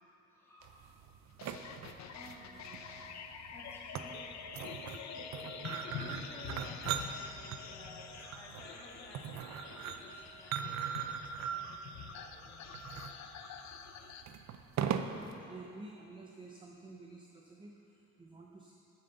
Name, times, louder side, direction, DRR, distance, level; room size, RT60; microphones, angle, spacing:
voice 1, 0.3-1.0 2.1-3.1 3.5-4.2 5.6-12.7, left 1 dB, 10° left, -7 dB, 2.4 m, -55 dB
sound 1, 0.6-15.4, right 8 dB, 65° right, 0.6 m, -41 dB
sound 2, 1.4-14.2, left 6 dB, 65° left, 0.7 m, -47 dB
voice 2, 15.0-18.7, right 2 dB, 15° right, 0 dB, 0.6 m, -51 dB
9.6 x 7.8 x 6.6 m, 2.9 s
cardioid pair, 165°, 30 cm